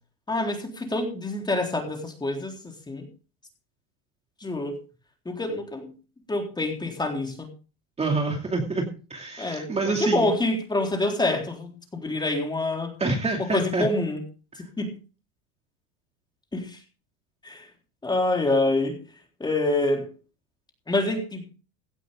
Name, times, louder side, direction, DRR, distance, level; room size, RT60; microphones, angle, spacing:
voice 1, 0.3-2.6 2.9-3.1 4.4-4.8 5.3-5.9 6.3-7.5 9.4-12.9 13.4-14.2 14.8-14.9 16.5-16.8 17.4-17.6 18.0-19.0 19.4-20.1 20.9-21.5, left 2 dB, 10° left, 3 dB, 3.8 m, -26 dB
voice 2, 8.0-10.3 13.0-13.9, right 3 dB, 15° right, 2 dB, 2.5 m, -27 dB
17.0 x 12.0 x 3.6 m, 0.35 s
supercardioid pair, 125°, 37 cm